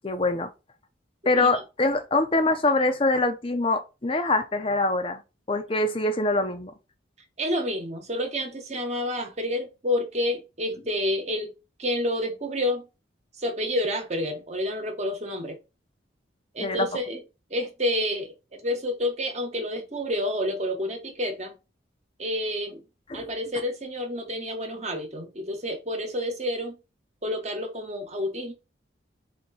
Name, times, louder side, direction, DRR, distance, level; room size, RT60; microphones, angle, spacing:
voice 1, 0.0-0.5 1.3-5.2 5.5-6.7 16.6-16.9 23.1-23.3, left 2 dB, 30° left, 0.6 m, -24 dB
voice 2, 7.4-11.5 11.8-12.9 13.3-15.6 16.5-17.2 17.5-21.6 22.2-22.8 23.1-26.8 27.2-28.5, left 1 dB, 35° right, 1.2 m, -29 dB
4.4 x 2.9 x 4.1 m
head